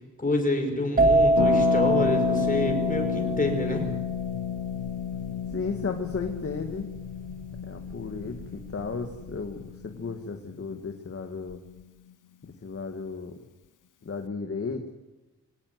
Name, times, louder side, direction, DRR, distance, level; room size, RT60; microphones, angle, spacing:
voice 1, 0.2-3.9, left 1 dB, 25° left, 3 dB, 5.5 m, -27 dB
sound 1, 1.0-8.5 8.8-9.3, right 2 dB, 30° right, 2.9 m, -26 dB
Harp, 1.4-11.0 11.2-11.3 11.5-11.8, left 9 dB, 80° left, 0.9 m, -32 dB
voice 2, 5.5-6.9 7.6-11.6 12.6-13.4 14.0-14.9, left 4 dB, 45° left, 4 dB, 2.0 m, -34 dB
24.5 x 17.5 x 9.4 m, 1.1 s
wide cardioid pair, 135°, 31 cm